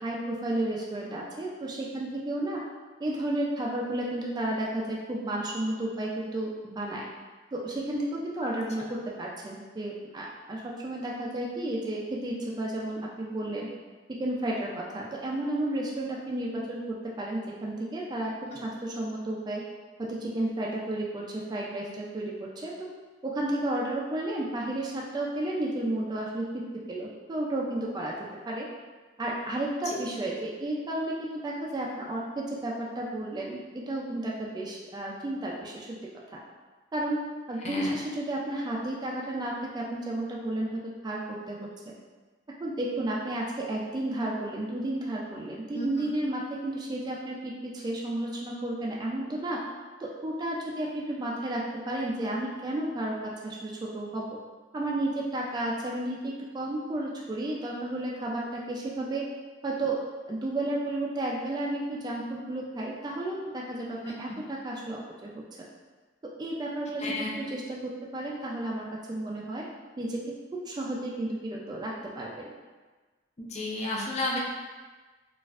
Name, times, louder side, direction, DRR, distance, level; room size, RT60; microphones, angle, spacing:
voice 1, 0.0-2.6 3.0-7.1 7.5-13.7 14.2-18.3 18.6-19.6 20.0-22.9 23.2-26.5 26.9-28.1 28.5-28.7 29.2-35.9 36.3-36.4 36.9-37.2 37.5-41.9 42.6-47.5 47.8-49.6 50.0-54.3 54.7-59.2 59.6-60.0 60.3-65.4 66.4-69.6 70.0-70.2 70.7-72.3, right 1 dB, 25° right, -3 dB, 0.3 m, -32 dB
voice 2, 37.6-38.0 45.7-45.9 64.0-64.1 67.0-67.3 73.4-74.4, left 2 dB, 40° left, -2 dB, 0.5 m, -32 dB
4.1 x 2.4 x 2.4 m, 1.3 s
head